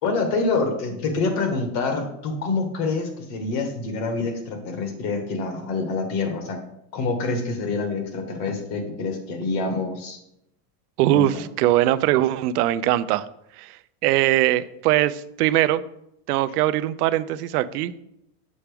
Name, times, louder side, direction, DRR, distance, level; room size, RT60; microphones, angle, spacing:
voice 1, 0.0-6.6 6.9-10.2 11.1-11.3, left 3 dB, 50° left, 5 dB, 1.6 m, -26 dB
voice 2, 11.0-13.3 13.6-15.8 16.3-18.0, right 14 dB, 70° right, 15 dB, 0.6 m, -21 dB
7.2 x 5.7 x 3.4 m, 0.79 s
supercardioid pair, 145°, 48 cm